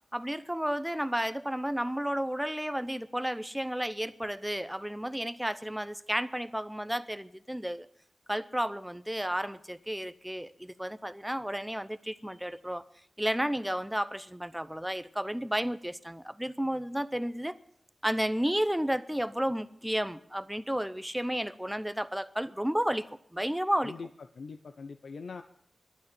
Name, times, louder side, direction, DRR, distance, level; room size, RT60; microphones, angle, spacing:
voice 1, 0.1-7.9 8.3-12.8 13.2-17.6 18.0-23.1 23.3-23.9, equal, 5° right, 14 dB, 0.7 m, -32 dB
voice 2, 24.3-25.4, left 4 dB, 80° left, 8 dB, 0.7 m, -42 dB
12.0 x 9.2 x 9.8 m, 0.69 s
wide cardioid pair, 85°, 0 cm